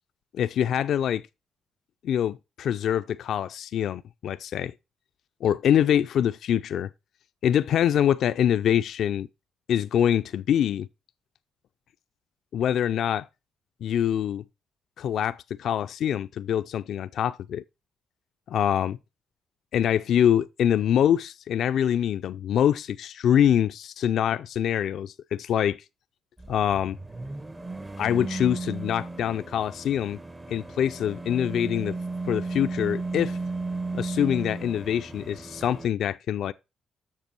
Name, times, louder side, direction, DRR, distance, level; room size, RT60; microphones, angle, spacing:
voice 1, 0.3-1.2 2.0-4.7 5.4-6.9 7.4-9.3 9.7-10.9 12.5-13.3 13.8-14.4 15.0-17.6 18.5-19.0 19.7-25.8 26.5-27.0 28.0-30.2 30.5-32.0 32.3-33.4 33.9-36.5, left 9 dB, 70° left, 0.4 m, -24 dB
sound 1, 26.4-35.9, right 3 dB, 20° right, 0.6 m, -35 dB
7.5 x 6.6 x 4.4 m
cardioid pair, 90°, 0 cm